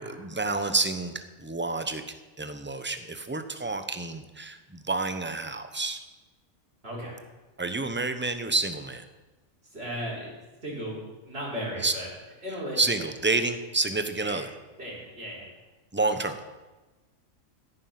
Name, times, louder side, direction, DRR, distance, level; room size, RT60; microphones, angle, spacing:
voice 1, 0.0-6.1 7.6-9.1 11.8-11.9 12.8-14.5 15.9-16.4, right 3 dB, 10° right, 9 dB, 0.8 m, -29 dB
voice 2, 6.8-7.2 9.7-10.3 10.6-12.1 12.4-12.8 14.2-14.4 14.8-15.5, equal, 45° right, -5 dB, 5.1 m, -36 dB
16.0 x 9.7 x 6.0 m, 1.2 s
omnidirectional pair, 1.4 m